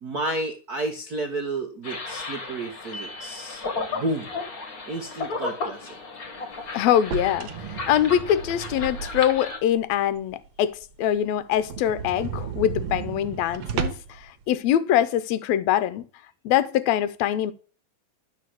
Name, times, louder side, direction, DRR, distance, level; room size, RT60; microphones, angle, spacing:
voice 1, 0.0-3.6 3.9-4.3 4.9-5.9, right 2 dB, 80° right, 0.8 m, -31 dB
sound 1, 1.8-9.6, left 3 dB, 35° left, 1.8 m, -34 dB
voice 2, 6.7-16.0 16.4-17.5, left 11 dB, 70° left, 1.8 m, -23 dB
sound 2, 7.0-9.5 9.9-10.0 10.5-10.6 10.8-10.9 11.2-11.3 11.6-14.2, right 7 dB, 60° right, 1.8 m, -33 dB
12.0 x 4.8 x 7.7 m
omnidirectional pair, 3.6 m